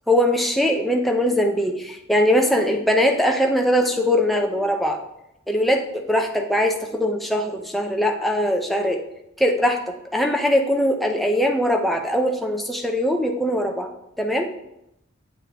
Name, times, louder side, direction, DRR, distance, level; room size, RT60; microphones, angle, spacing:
voice 1, 0.1-5.0 5.5-9.0 9.4-9.8 10.1-13.9 14.2-14.5, equal, ahead, 2 dB, 0.6 m, -21 dB
7.7 x 7.4 x 3.4 m, 0.84 s
head